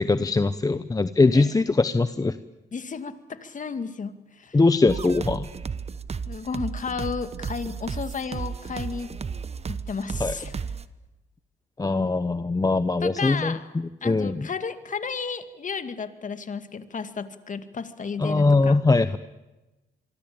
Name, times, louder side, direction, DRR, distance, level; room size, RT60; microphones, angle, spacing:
voice 1, 0.0-2.4 4.5-5.5 10.2-10.3 11.8-14.5 18.2-19.2, left 3 dB, 20° left, 12 dB, 0.9 m, -21 dB
voice 2, 2.7-4.6 6.3-9.1 9.7-10.6 13.0-13.7 14.0-18.8, left 5 dB, 40° left, 10 dB, 2.2 m, -33 dB
sound 1, 4.9-10.8, right 5 dB, 30° right, 1.2 m, -33 dB
26.0 x 24.0 x 8.8 m, 1.1 s
cardioid pair, 90°, 20 cm